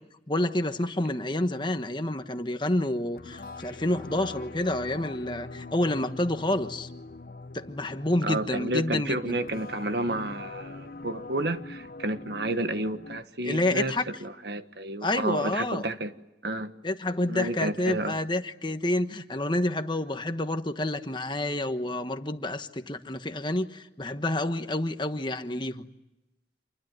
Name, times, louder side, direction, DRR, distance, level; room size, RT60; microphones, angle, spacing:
voice 1, 0.3-6.9 7.5-9.4 13.4-14.0 15.0-15.9 16.8-25.9, left 1 dB, 25° left, 1.3 m, -29 dB
sound 1, 3.2-13.2, left 3 dB, 50° left, 0.9 m, -43 dB
voice 2, 8.2-16.1 16.4-16.7 17.3-18.1, right 1 dB, 65° right, 1.4 m, -31 dB
27.5 x 22.0 x 9.4 m
head